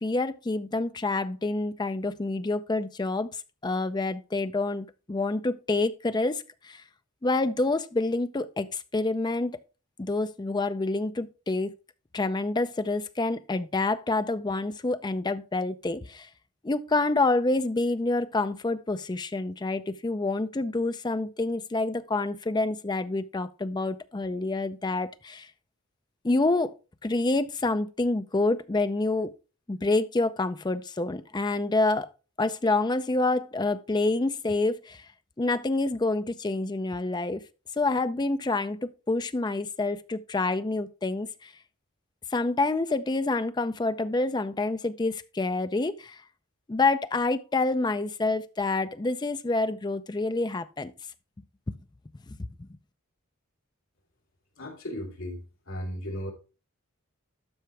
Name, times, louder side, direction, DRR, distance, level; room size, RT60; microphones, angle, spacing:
voice 1, 0.0-6.8 7.2-9.6 10.0-11.7 12.1-16.3 16.6-25.5 26.2-26.7 27.0-29.3 29.7-32.1 32.4-35.1 35.4-37.4 37.8-38.8 39.1-41.5 42.3-46.2 46.7-50.9 51.7-51.8 52.3-52.5, left 2 dB, 20° left, 0.4 m, -27 dB
voice 2, 54.6-56.3, equal, 65° left, 3.1 m, -36 dB
12.5 x 5.7 x 3.3 m
head